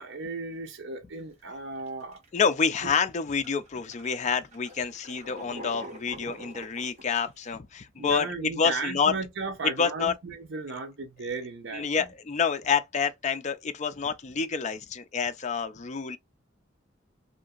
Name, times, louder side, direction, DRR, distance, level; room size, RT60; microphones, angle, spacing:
voice 1, 0.0-2.2 7.9-12.1, right 3 dB, 65° right, 0.7 m, -35 dB
sound 1, 1.2-1.4 1.9-2.4 3.0-3.1 3.4-7.5, right 1 dB, 35° right, 1.2 m, -45 dB
voice 2, 2.3-9.1 9.8-10.1 11.7-16.2, left 6 dB, 35° left, 0.4 m, -28 dB
2.8 x 2.5 x 2.3 m
head